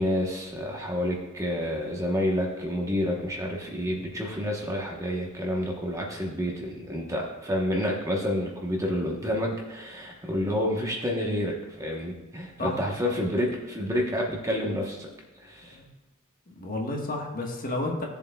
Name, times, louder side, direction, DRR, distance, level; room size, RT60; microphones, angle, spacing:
voice 1, 0.0-15.1 15.4-15.8, equal, 15° right, -1 dB, 1.0 m, -29 dB
voice 2, 12.6-13.1 15.7-15.9 16.5-18.0, left 2 dB, 40° left, 0 dB, 1.4 m, -31 dB
15.5 x 7.2 x 2.3 m, 1.1 s
head